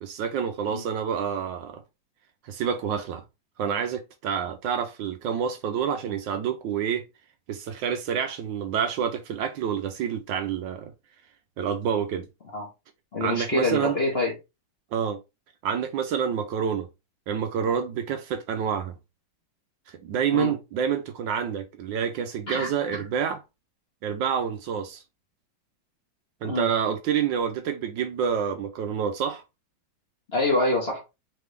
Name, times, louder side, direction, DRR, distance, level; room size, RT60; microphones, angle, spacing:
voice 1, 0.0-1.8 2.4-3.2 3.6-7.0 7.5-10.9 11.6-12.3 13.2-14.0 14.9-15.2 15.6-16.9 17.3-18.9 19.9-23.4 24.0-25.0 26.4-29.4, right 7 dB, 75° right, 1.2 m, -28 dB
voice 2, 13.1-14.3 20.3-20.6 22.5-23.0 26.4-26.7 30.3-31.0, left 2 dB, 35° left, 1.1 m, -26 dB
3.8 x 3.4 x 3.3 m
omnidirectional pair, 2.2 m